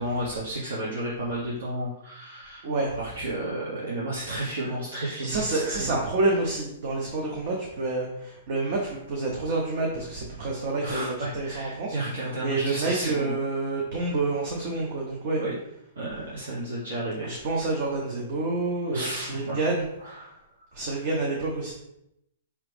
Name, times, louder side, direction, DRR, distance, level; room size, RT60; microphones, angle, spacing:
voice 1, 0.0-2.6 3.0-6.0 10.8-13.3 14.0-14.1 15.4-15.5 15.9-17.3 18.9-19.6 20.0-20.3, right 1 dB, 85° right, -7 dB, 1.3 m, -32 dB
voice 2, 2.6-2.9 5.2-11.9 12.4-15.4 17.2-19.9 20.7-21.7, right 2 dB, 45° right, -1 dB, 0.7 m, -28 dB
4.8 x 3.0 x 3.5 m, 0.81 s
hypercardioid pair, 165°, 0 cm